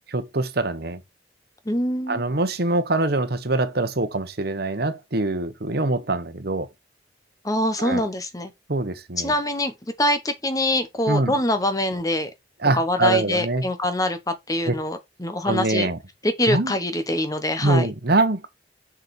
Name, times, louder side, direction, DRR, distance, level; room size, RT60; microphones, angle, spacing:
voice 1, 0.1-1.0 2.1-6.7 7.8-8.1 8.7-9.3 11.1-11.3 12.6-13.6 14.7-14.8 15.4-16.0 16.5-16.7 17.6-18.5, right 2 dB, 55° right, 1.2 m, -24 dB
voice 2, 1.6-2.2 7.4-8.5 9.2-12.3 12.7-14.2 14.5-15.9 16.2-17.9, left 1 dB, 20° left, 1.0 m, -24 dB
6.6 x 6.2 x 4.3 m
head